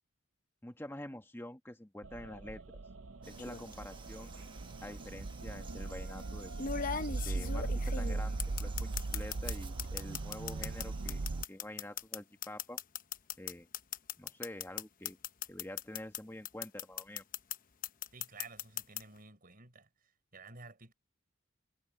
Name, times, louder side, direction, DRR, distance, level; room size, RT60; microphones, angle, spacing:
voice 1, 0.6-2.6 3.3-4.5 4.8-6.5 7.2-11.2 11.5-12.8 13.4-13.7 14.2-15.2 15.5-17.2, left 1 dB, 10° left, 1.4 m, -47 dB
sound 1, 2.0-11.4, right 3 dB, 85° right, 0.7 m, -39 dB
Frog, 3.2-11.5, right 5 dB, 25° right, 1.3 m, -55 dB
sound 2, 3.4-3.7 4.9-5.0 6.6-9.5 9.8-16.2 16.4-17.6 17.8-19.0, left 8 dB, 45° left, 0.9 m, -38 dB
voice 2, 18.1-19.9 20.3-20.9, right 4 dB, 45° right, 5.5 m, -52 dB
head